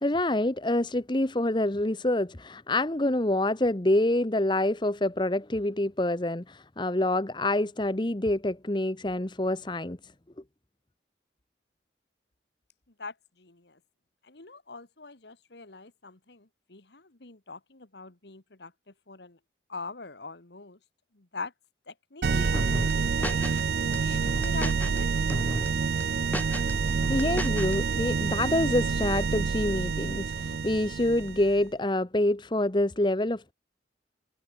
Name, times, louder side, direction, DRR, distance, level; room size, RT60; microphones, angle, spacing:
voice 1, 0.0-10.0 27.1-33.5, left 1 dB, 25° left, 1.0 m, -26 dB
voice 2, 13.0-13.8 14.2-18.7 19.1-19.4 19.7-20.8 21.1-21.5 21.9-23.5 24.0-25.1, left 3 dB, 70° left, 1.8 m, -42 dB
sound 1, 22.2-31.6, right 5 dB, 60° right, 0.4 m, -28 dB
sound 2, 22.5-23.6 23.9-25.0 25.3-25.7 26.0-27.8, left 1 dB, 10° left, 2.7 m, -34 dB
head